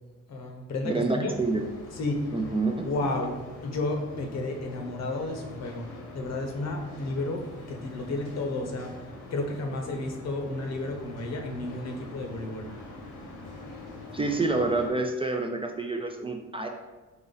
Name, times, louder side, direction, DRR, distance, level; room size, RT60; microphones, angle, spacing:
voice 1, 0.3-1.3 1.9-2.3 2.8-3.4 3.6-5.9 6.1-8.9 9.3-12.7, left 2 dB, 60° left, 3 dB, 0.8 m, -32 dB
voice 2, 0.8-1.6 2.3-2.9 14.1-16.7, right 3 dB, 20° right, 3 dB, 0.3 m, -28 dB
sound 1, 1.3-14.9, left 2 dB, 85° left, 1.2 m, -44 dB
3.9 x 2.9 x 3.9 m, 1.2 s
cardioid pair, 90°, 30 cm